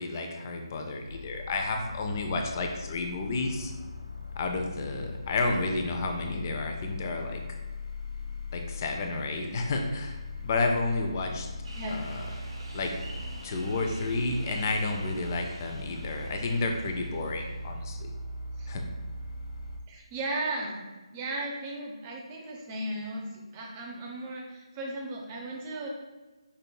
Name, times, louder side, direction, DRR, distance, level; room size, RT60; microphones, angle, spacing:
voice 1, 0.0-3.7 4.4-7.4 8.5-11.5 11.9-12.3 12.7-12.9 13.4-18.1 18.7-18.8, left 3 dB, 35° left, 3 dB, 0.4 m, -31 dB
sound 1, 1.1-19.8, left 2 dB, 90° left, 0.5 m, -40 dB
sound 2, 11.6-17.8, right 1 dB, 70° right, 0.8 m, -48 dB
voice 2, 19.9-20.8 21.1-25.9, right 1 dB, 20° right, -1 dB, 0.6 m, -36 dB
5.1 x 2.8 x 2.2 m, 1.2 s
figure-of-eight pair, 155°, 3 cm